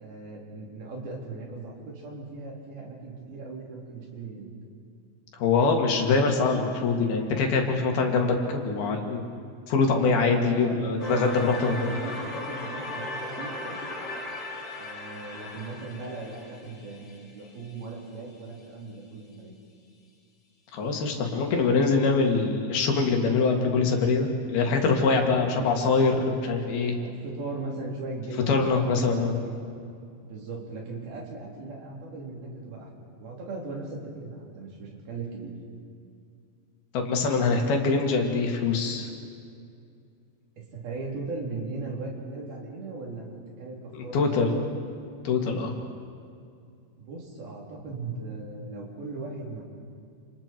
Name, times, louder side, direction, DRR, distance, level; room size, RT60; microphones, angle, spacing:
voice 1, 0.0-4.5 10.3-13.8 14.8-19.6 25.5-25.7 26.5-26.6 27.0-29.6 30.2-35.5 40.6-43.3 43.6-44.6 47.0-49.6, right 3 dB, 80° right, -2 dB, 5.3 m, -38 dB
voice 2, 5.4-9.2 9.7-11.9 20.7-27.0 28.5-29.4 36.9-39.1 43.9-44.6 45.3-45.7, left 4 dB, 90° left, 2 dB, 4.1 m, -24 dB
sound 1, 11.0-17.9, left 2 dB, 50° left, 4.5 m, -37 dB
28.5 x 28.0 x 4.6 m, 2.4 s
omnidirectional pair, 4.3 m